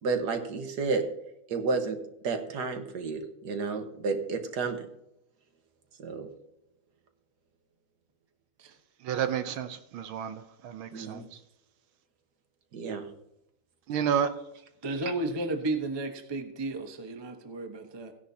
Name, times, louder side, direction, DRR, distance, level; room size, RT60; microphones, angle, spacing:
voice 1, 0.0-1.1 1.5-4.8 6.0-6.3 10.9-11.3 12.7-13.1, right 4 dB, 55° right, 1.6 m, -31 dB
voice 2, 9.0-11.4 13.9-14.3, right 8 dB, 75° right, 1.5 m, -31 dB
voice 3, 14.8-18.1, right 2 dB, 40° right, 0.4 m, -33 dB
16.5 x 10.5 x 2.8 m
omnidirectional pair, 2.4 m